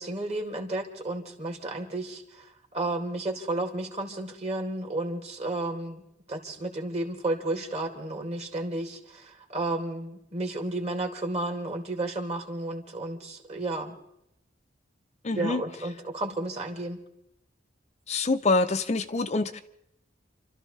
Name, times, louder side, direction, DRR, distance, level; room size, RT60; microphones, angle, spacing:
voice 1, 0.0-2.2 2.7-6.0 6.3-13.9 15.3-17.0, right 2 dB, 35° right, 3 dB, 2.1 m, -32 dB
voice 2, 15.2-15.6 18.1-19.6, left 3 dB, 35° left, 8 dB, 0.5 m, -25 dB
29.5 x 13.0 x 3.2 m, 0.82 s
head